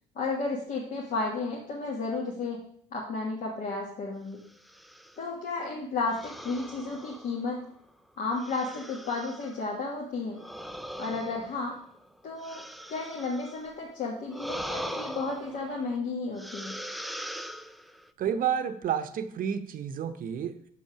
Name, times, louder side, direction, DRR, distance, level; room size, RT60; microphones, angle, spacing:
voice 1, 0.1-2.6 2.9-4.4 5.2-7.6 8.2-10.4 11.0-11.8 12.2-12.6 12.9-16.8, left 3 dB, 55° left, -3 dB, 1.5 m, -33 dB
sound 1, 4.5-5.2 6.1-7.7 8.4-9.6 10.3-13.7 14.3-16.0 16.4-18.1, equal, ahead, 0.4 m, -41 dB
voice 2, 18.2-20.7, right 8 dB, 55° right, 9 dB, 0.8 m, -30 dB
6.4 x 5.6 x 5.8 m, 0.64 s
cardioid pair, 110°, 17 cm